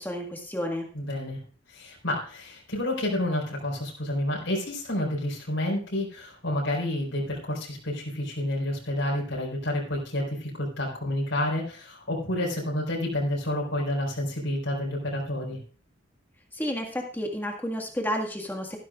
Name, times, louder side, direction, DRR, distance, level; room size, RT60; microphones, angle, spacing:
voice 1, 0.0-0.9 16.5-18.8, equal, 10° left, 2 dB, 1.8 m, -31 dB
voice 2, 0.9-1.4 1.7-15.6, left 1 dB, 75° left, -3 dB, 4.5 m, -29 dB
14.5 x 13.0 x 2.5 m, 0.40 s
head